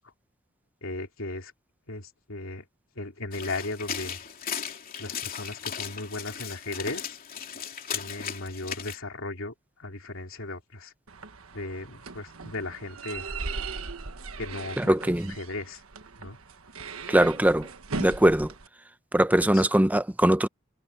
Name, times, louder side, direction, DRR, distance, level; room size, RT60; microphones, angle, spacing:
voice 1, 0.8-1.5 1.9-2.6 2.9-4.2 5.0-7.2 7.9-9.5 9.8-10.9 11.5-13.4 14.4-14.9 15.2-15.8 16.2-16.4 19.5-19.6, left 2 dB, 70° left, 3.2 m, -36 dB
sound 1, 3.3-9.0, left 8 dB, 45° left, 2.9 m, -36 dB
creaking of door from outside, 11.1-18.7, right 4 dB, 90° right, 1.4 m, -39 dB
voice 2, 14.8-15.3 17.1-17.7 18.0-18.5 19.1-20.5, right 1 dB, 10° right, 0.7 m, -21 dB
head